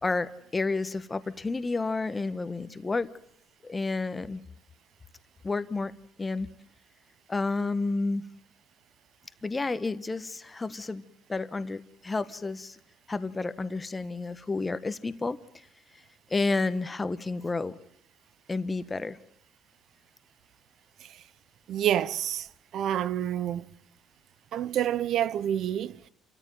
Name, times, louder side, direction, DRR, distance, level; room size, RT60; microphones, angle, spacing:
voice 1, 0.0-3.1 3.6-4.4 5.4-5.9 6.2-6.5 7.3-8.2 9.4-11.0 11.3-12.8 13.1-15.6 16.3-17.8 18.5-19.2, left 3 dB, 15° left, 1.3 m, -30 dB
voice 2, 21.7-22.5 22.7-23.6 24.5-26.1, right 11 dB, 60° right, 0.9 m, -28 dB
29.0 x 13.5 x 9.3 m
cardioid pair, 140°, 0 cm